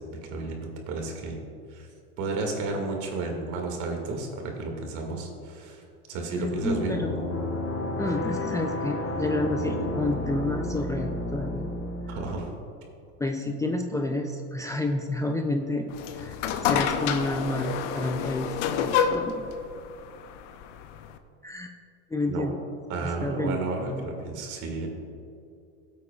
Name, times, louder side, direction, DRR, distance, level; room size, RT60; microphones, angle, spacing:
voice 1, 0.1-1.4 1.7-1.9 2.2-5.8 6.1-7.0 12.1-12.5 22.3-22.5 22.9-24.9, right 3 dB, 55° right, 2 dB, 2.2 m, -32 dB
voice 2, 6.4-7.5 8.0-11.7 12.1-12.2 13.2-15.9 16.1-16.4 16.6-18.5 19.0-19.3 21.4-21.7 22.1-22.6 23.0-24.1, left 2 dB, 10° left, 3 dB, 0.5 m, -30 dB
sound 1, 6.5-12.5, left 1 dB, 35° left, 1.1 m, -32 dB
sound 2, 15.9-21.2, left 7 dB, 80° left, 0.8 m, -28 dB
15.5 x 8.3 x 2.4 m, 2.6 s
supercardioid pair, 110°, 35 cm